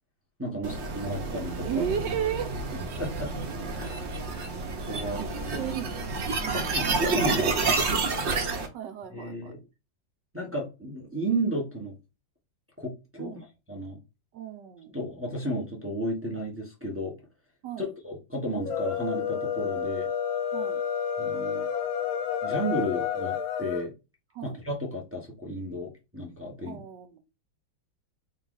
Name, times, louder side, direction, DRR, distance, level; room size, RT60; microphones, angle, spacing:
voice 1, 0.4-1.8 2.7-3.3 3.7-3.9 4.9-5.2 5.5-5.6 6.5-7.9 9.1-9.6 10.3-11.9 12.8-13.4 13.7-14.0 14.9-17.1 17.8-20.1 21.2-21.7 22.4-23.9 24.4-26.8, right 1 dB, 15° right, 0.5 m, -33 dB
sound 1, 0.6-8.7, right 3 dB, 50° right, 0.9 m, -29 dB
voice 2, 1.6-2.5 5.1-5.3 5.5-5.9 6.4-6.8 8.5-9.6 13.2-13.4 14.3-14.9 17.6-17.9 20.5-20.8 24.3-24.6 26.6-27.2, right 9 dB, 75° right, 1.2 m, -35 dB
sound 2, 18.6-23.9, left 8 dB, 85° left, 1.6 m, -30 dB
4.0 x 2.4 x 3.8 m
omnidirectional pair, 2.0 m